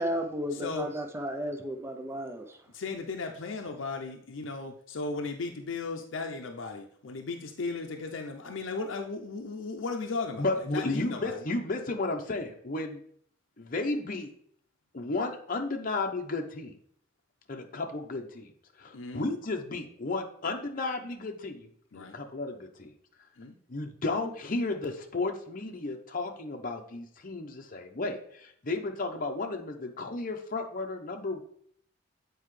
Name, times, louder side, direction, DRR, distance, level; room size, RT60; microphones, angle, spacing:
voice 1, 0.0-2.4, equal, 15° right, 4 dB, 0.6 m, -33 dB
voice 2, 0.5-0.9 2.7-11.4 18.9-19.3 21.9-22.2 23.4-23.6, left 3 dB, 80° left, 3 dB, 0.6 m, -36 dB
voice 3, 10.4-13.0 13.6-14.3 14.9-16.7 17.5-18.5 18.8-22.9 23.7-31.4, left 2 dB, 45° left, 3 dB, 0.8 m, -33 dB
7.9 x 4.6 x 3.2 m, 0.62 s
head